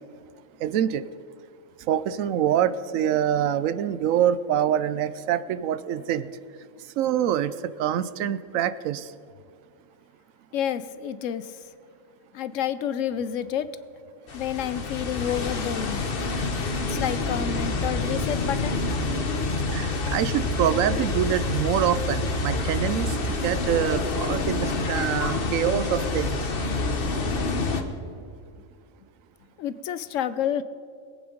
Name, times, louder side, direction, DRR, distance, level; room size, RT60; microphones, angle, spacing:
voice 1, 0.6-1.0 1.9-6.3 7.0-7.5 7.8-9.1 19.7-23.2 23.4-26.4, right 10 dB, 80° right, 14 dB, 1.0 m, -25 dB
voice 2, 10.5-11.7 12.3-13.7 14.3-16.1 16.8-18.8 26.9-27.1 29.6-30.6, left 9 dB, 75° left, 14 dB, 1.0 m, -29 dB
sound 1, 14.3-27.8, left 3 dB, 45° left, 1.2 m, -27 dB
21.0 x 8.7 x 5.1 m, 2.4 s
omnidirectional pair, 1.4 m